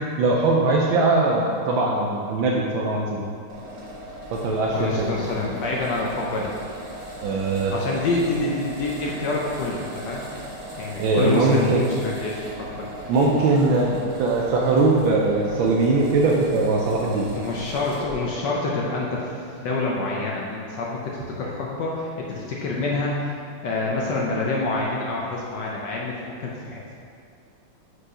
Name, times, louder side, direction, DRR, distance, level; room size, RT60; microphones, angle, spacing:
voice 1, 0.2-3.2 4.3-5.4 7.2-7.7 11.0-11.9 13.1-17.3, right 3 dB, 75° right, -2 dB, 1.3 m, -21 dB
sound 1, 3.5-18.2, right 1 dB, 30° right, 1.2 m, -38 dB
voice 2, 4.7-6.5 7.7-10.2 10.8-13.1 17.3-23.3 23.6-26.9, left 2 dB, 70° left, -3 dB, 1.1 m, -27 dB
4.8 x 4.8 x 4.9 m, 2.3 s
omnidirectional pair, 2.3 m